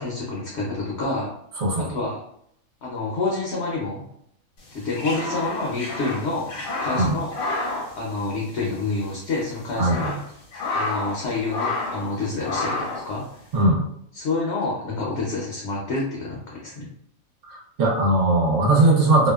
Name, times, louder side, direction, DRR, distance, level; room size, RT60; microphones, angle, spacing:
voice 1, 0.0-1.3 1.8-2.2 2.8-4.1 4.7-7.3 8.0-10.1 10.7-13.2 14.1-16.9, left 3 dB, 60° left, -3 dB, 0.8 m, -28 dB
voice 2, 1.6-2.0 6.9-7.2 9.8-10.2 13.5-13.8 17.5-19.3, right 2 dB, 65° right, -3 dB, 1.1 m, -19 dB
sound 1, 4.7-8.7 9.0-9.1 9.6-11.2 11.5-12.1 12.4-13.1, left 2 dB, 80° left, 1.2 m, -29 dB
2.7 x 2.1 x 2.2 m, 0.71 s
omnidirectional pair, 1.5 m